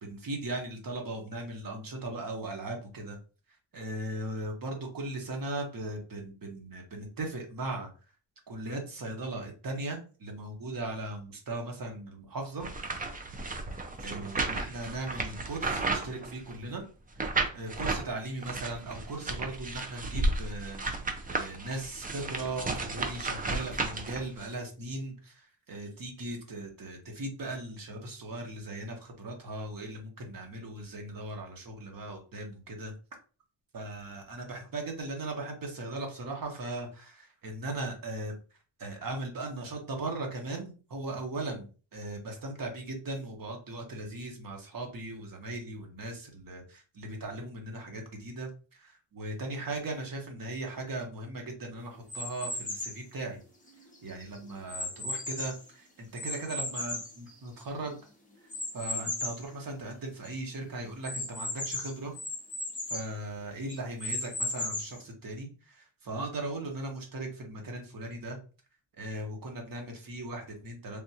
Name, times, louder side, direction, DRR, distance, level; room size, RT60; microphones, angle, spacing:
voice 1, 0.0-3.2 3.7-7.9 8.5-12.7 14.0-16.8 17.3-32.9 33.7-38.3 38.8-41.7 41.9-53.4 54.0-58.0 58.7-62.1 62.9-68.4 69.0-71.0, right 2 dB, 45° right, 2 dB, 1.1 m, -38 dB
sound 1, 12.6-16.6 17.2-18.0 18.4-24.5, right 3 dB, 20° right, 0.4 m, -33 dB
sound 2, 52.1-53.0 53.7-55.7 56.2-57.8 58.5-59.5 59.9-60.0 60.2-60.3 61.0-63.1 63.7-65.0, left 2 dB, 15° left, 0.9 m, -36 dB
3.5 x 2.4 x 2.8 m, 0.36 s
cardioid pair, 115°, 49 cm